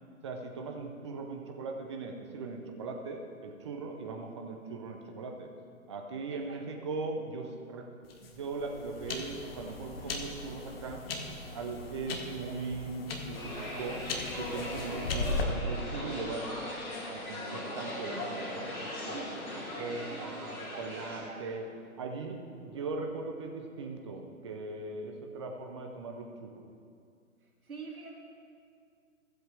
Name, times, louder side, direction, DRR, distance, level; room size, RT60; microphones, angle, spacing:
voice 1, 0.2-5.5 5.9-7.8 8.2-11.0 11.5-14.1 14.4-16.5 17.1-21.7 22.0-26.6, right 4 dB, 20° right, 3 dB, 0.5 m, -39 dB
sound 1, 8.0-15.4, left 3 dB, 45° left, 1.2 m, -38 dB
sound 2, 13.3-21.2, left 1 dB, 75° left, 2.8 m, -39 dB
voice 2, 20.1-21.5 27.6-28.1, right 4 dB, 80° right, -3 dB, 2.5 m, -46 dB
15.0 x 7.8 x 3.4 m, 2.3 s
hypercardioid pair, 140°, 43 cm